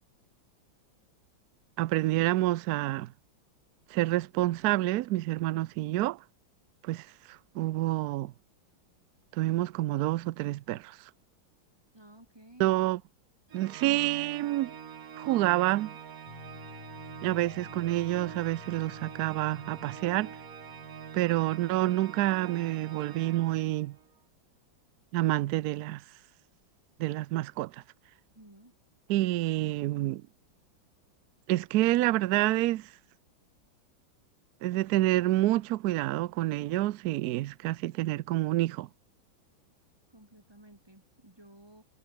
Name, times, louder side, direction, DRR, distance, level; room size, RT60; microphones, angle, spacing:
voice 1, 1.8-3.1 3.9-6.2 6.8-8.3 9.3-11.0 12.6-13.0 13.5-14.7 15.2-15.9 17.2-20.3 21.1-23.9 25.1-26.0 27.0-27.7 29.1-30.2 31.5-32.9 34.6-38.9, right 16 dB, 75° right, 0.9 m, -28 dB
voice 2, 11.9-12.8 28.3-28.7 40.1-41.8, right 1 dB, 10° right, 2.5 m, -54 dB
Organ, 13.5-24.1, right 8 dB, 50° right, 1.5 m, -45 dB
sound 1, 16.3-22.1, left 11 dB, 80° left, 1.8 m, -52 dB
omnidirectional pair, 2.2 m